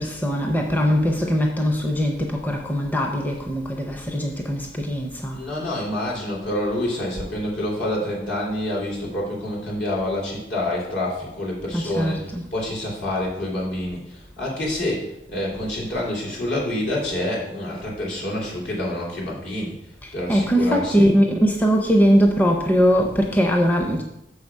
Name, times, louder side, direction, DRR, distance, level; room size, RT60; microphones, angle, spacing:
voice 1, 0.0-5.4 5.7-5.9 11.7-12.4 15.9-16.0 20.0-24.0, equal, 10° left, 0.6 m, -21 dB
voice 2, 5.3-19.7 20.1-21.1, left 1 dB, 75° left, 3.1 m, -27 dB
6.6 x 4.8 x 5.4 m
head